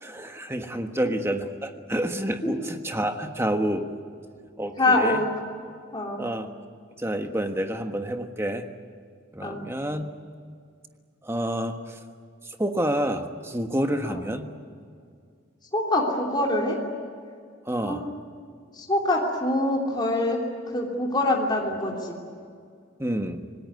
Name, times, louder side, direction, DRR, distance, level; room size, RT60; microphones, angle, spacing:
voice 1, 0.0-3.9 4.6-5.2 6.2-6.5 7.0-8.6 9.3-10.1 11.2-12.0 12.6-14.5 17.6-18.1 23.0-23.4, right 1 dB, 15° right, 6 dB, 1.4 m, -28 dB
voice 2, 4.8-5.3 5.9-6.3 9.4-9.6 14.0-14.3 15.7-16.8 17.8-18.1 18.7-20.4 20.7-22.2, left 2 dB, 20° left, -1 dB, 3.1 m, -25 dB
27.0 x 19.5 x 9.6 m, 2.2 s
head